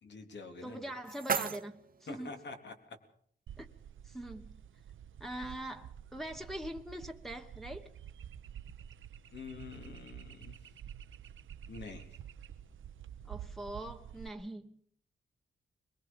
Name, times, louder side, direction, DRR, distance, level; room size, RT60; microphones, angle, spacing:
voice 1, 0.0-0.8 2.1-3.0 9.3-10.6 11.7-12.2, left 4 dB, 60° left, 3.6 m, -46 dB
sound 1, 0.5-2.5, right 6 dB, 45° right, 1.0 m, -38 dB
voice 2, 0.6-2.3 3.6-3.7 4.0-4.6 5.2-7.9 13.2-14.8, right 1 dB, ahead, 1.4 m, -43 dB
sound 2, 3.5-14.3, right 9 dB, 80° right, 0.9 m, -49 dB
22.5 x 22.5 x 5.6 m
wide cardioid pair, 150°, 20 cm